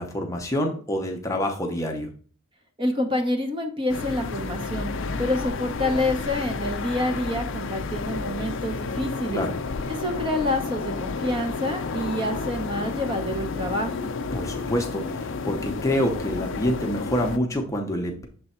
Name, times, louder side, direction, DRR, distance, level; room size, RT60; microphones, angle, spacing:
voice 1, 0.0-2.1 4.9-5.2 9.3-9.5 14.3-18.2, left 1 dB, 15° left, 2 dB, 0.7 m, -27 dB
voice 2, 2.8-4.9 5.2-9.4 9.9-14.0, left 1 dB, 25° right, 5 dB, 0.7 m, -27 dB
sound 1, 3.9-17.4, left 4 dB, 60° left, 0.4 m, -31 dB
6.8 x 3.4 x 4.2 m, 0.43 s
head